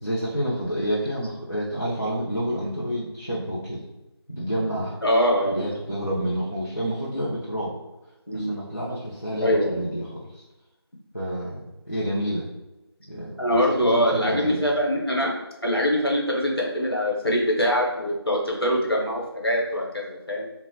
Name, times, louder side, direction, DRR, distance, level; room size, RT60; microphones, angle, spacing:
voice 1, 0.0-3.8 4.3-5.0 5.5-7.7 8.3-10.4 11.1-12.5 13.1-14.7, equal, 45° left, -8 dB, 0.5 m, -29 dB
voice 2, 5.0-5.6 8.3-8.5 9.4-9.8 13.4-15.3 15.6-20.4, equal, 65° left, -2 dB, 1.0 m, -23 dB
2.9 x 2.0 x 2.7 m, 0.98 s
figure-of-eight pair, 180°, 14 cm